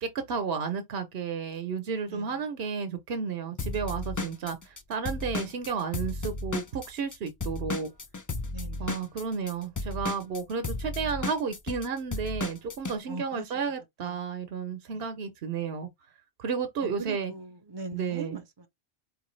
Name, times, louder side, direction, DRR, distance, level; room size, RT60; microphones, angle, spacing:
voice 1, 0.0-7.9 8.8-15.9 16.4-17.3 17.9-18.4, right 6 dB, 65° right, 1.0 m, -32 dB
Drum kit / Drum, 3.6-7.2 7.4-13.0, left 3 dB, 30° left, 0.3 m, -34 dB
voice 2, 8.5-8.9 13.1-13.5 14.0-14.2 14.9-15.0 16.8-18.7, right 4 dB, 30° right, 0.6 m, -40 dB
4.6 x 3.3 x 3.2 m
omnidirectional pair, 1.1 m